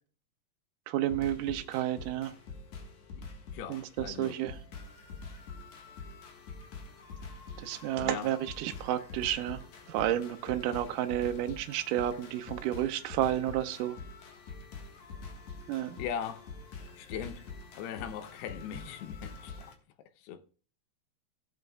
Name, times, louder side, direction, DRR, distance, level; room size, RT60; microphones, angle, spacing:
voice 1, 0.9-2.4 3.7-4.6 7.6-9.6 9.9-14.0 15.7-16.0, right 12 dB, 80° right, 1.9 m, -31 dB
sound 1, 1.1-19.7, left 4 dB, 60° left, 2.4 m, -46 dB
voice 2, 3.5-4.4 8.0-8.3 16.0-16.5 17.0-17.5 17.7-19.7 20.2-20.4, left 9 dB, 85° left, 2.9 m, -39 dB
18.0 x 7.9 x 2.3 m
omnidirectional pair, 4.5 m